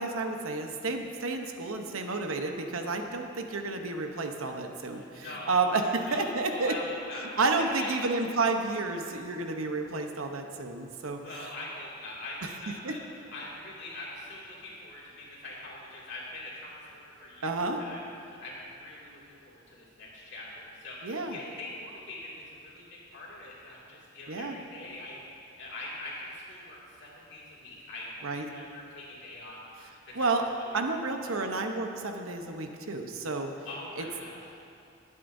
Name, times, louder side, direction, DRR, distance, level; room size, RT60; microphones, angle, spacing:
voice 1, 0.0-6.7 7.4-11.2 12.8-13.0 17.4-17.8 21.0-21.4 24.3-24.6 28.2-28.4 30.2-30.4 30.7-33.5 34.0-34.1, right 3 dB, 85° right, 4 dB, 0.9 m, -30 dB
voice 2, 4.9-7.9 11.1-25.2 25.6-31.0 31.5-31.6 33.6-34.5, left 2 dB, 55° left, -5 dB, 2.4 m, -43 dB
20.0 x 8.3 x 2.7 m, 2.7 s
head